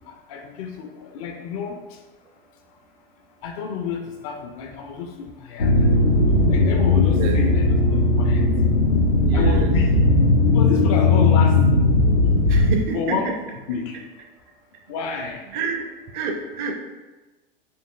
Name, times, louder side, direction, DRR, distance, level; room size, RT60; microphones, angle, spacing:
voice 1, 0.1-1.8 3.4-6.0 6.5-8.5 9.3-9.9 10.5-11.6 12.9-13.3 13.7-14.0 14.9-15.4, left 6 dB, 40° left, 4 dB, 0.4 m, -30 dB
sound 1, 5.6-12.8, left 2 dB, 85° left, 0.5 m, -17 dB
voice 2, 9.3-9.7 12.5-13.0 15.5-15.8 16.1-16.7, right 5 dB, 35° right, 3 dB, 0.5 m, -28 dB
4.5 x 2.8 x 2.3 m, 1.1 s
figure-of-eight pair, 90°, 29 cm